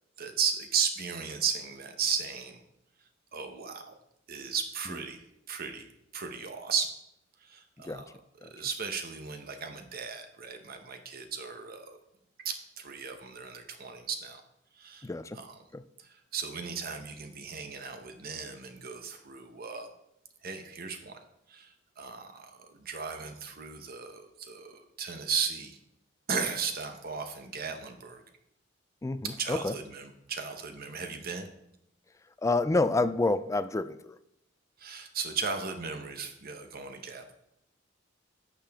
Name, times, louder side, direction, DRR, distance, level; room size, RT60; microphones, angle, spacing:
voice 1, 0.2-2.6 3.3-3.9 4.3-5.2 5.5-5.9 6.1-6.9 7.4-8.1 8.4-12.0 12.4-14.4 14.8-15.1 15.3-15.5 16.0-19.9 20.4-21.2 21.5-25.8 26.3-28.2 29.4-31.5 34.8-37.3, right 6 dB, 50° right, 6 dB, 0.9 m, -35 dB
voice 2, 15.0-15.4 15.7-15.8 29.0-29.8 32.4-34.2, left 2 dB, 15° left, 13 dB, 0.4 m, -29 dB
11.0 x 6.8 x 3.5 m, 0.80 s
head